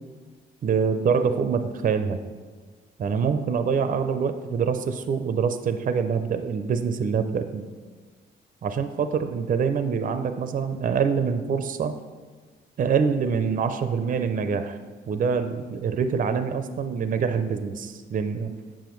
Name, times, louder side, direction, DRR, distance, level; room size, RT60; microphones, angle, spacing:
voice 1, 0.6-2.2 3.0-7.7 8.6-12.0 12.8-14.8 15.1-18.5, right 6 dB, 45° right, 9 dB, 0.5 m, -25 dB
7.3 x 6.9 x 3.1 m, 1.4 s
cardioid pair, 90°, 20 cm